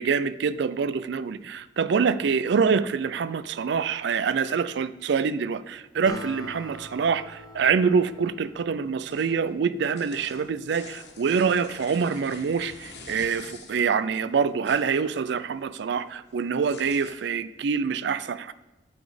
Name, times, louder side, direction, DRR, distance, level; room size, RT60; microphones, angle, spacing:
voice 1, 0.0-18.5, right 6 dB, 70° right, 0.4 m, -25 dB
Acoustic guitar, 6.1-9.8, left 1 dB, 20° left, 1.1 m, -44 dB
sound 1, 9.1-9.5 9.8-14.0 14.3-15.6 15.9-17.1, left 4 dB, 65° left, 1.5 m, -46 dB
12.5 x 4.2 x 5.0 m
head